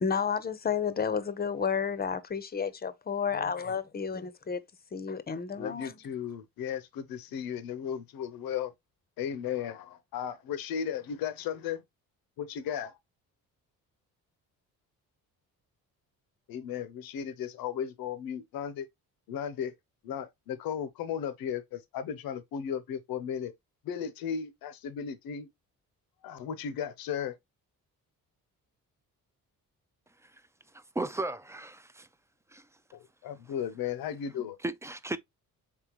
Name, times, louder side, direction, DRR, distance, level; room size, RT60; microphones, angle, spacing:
voice 1, 0.0-4.6 4.9-5.9, left 6 dB, 25° left, 0.6 m, -31 dB
voice 2, 5.6-8.7 9.2-11.8 12.4-13.0 16.5-18.9 19.3-19.7 20.0-23.5 23.8-25.5 26.2-27.4 32.9-34.6, left 8 dB, 80° left, 0.8 m, -35 dB
voice 3, 30.7-32.1 32.5-32.6 34.6-35.2, right 2 dB, 10° right, 0.3 m, -35 dB
4.4 x 3.7 x 2.9 m
cardioid pair, 95°, 35 cm